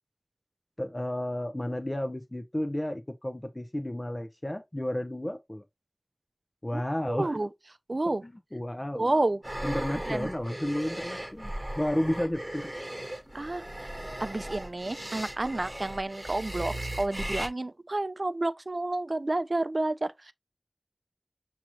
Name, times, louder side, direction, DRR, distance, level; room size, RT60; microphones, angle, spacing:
voice 1, 0.8-5.6 6.6-7.4 8.1-9.1 9.6-12.7, left 1 dB, 35° left, 0.6 m, -32 dB
voice 2, 7.1-7.5 7.9-8.2 8.9-9.4 10.0-10.3 13.3-13.9 14.2-20.3, right 2 dB, 75° right, 0.4 m, -30 dB
sound 1, 9.4-17.5, right 1 dB, 25° right, 1.1 m, -37 dB
6.2 x 2.9 x 2.9 m
wide cardioid pair, 45°, 0 cm